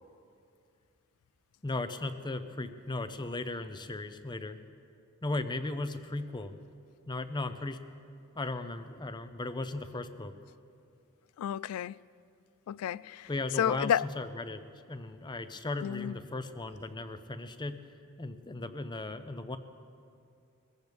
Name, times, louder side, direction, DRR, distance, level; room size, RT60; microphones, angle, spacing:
voice 1, 1.6-4.6 5.2-6.5 7.1-7.8 8.3-10.3 13.3-14.6 14.9-17.8 18.2-19.6, left 2 dB, 20° left, 0.7 m, -36 dB
voice 2, 11.4-12.0 12.7-13.3 13.6-14.0 15.8-16.1, left 9 dB, 80° left, 0.3 m, -30 dB
22.5 x 14.5 x 3.5 m
head